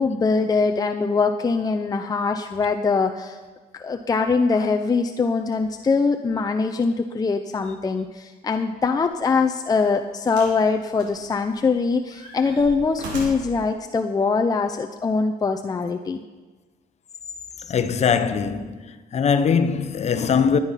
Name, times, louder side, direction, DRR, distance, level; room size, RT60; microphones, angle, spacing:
voice 1, 0.0-3.4 3.7-16.2, left 4 dB, 20° left, 0.7 m, -22 dB
sound 1, 9.1-9.3 10.3-10.6 11.0-11.7 12.1-13.6 14.5-14.6, right 2 dB, 80° right, 4.5 m, -37 dB
voice 2, 17.7-18.8 19.1-20.6, left 6 dB, 40° left, 1.0 m, -21 dB
13.5 x 10.0 x 5.7 m
cardioid pair, 110°, 17 cm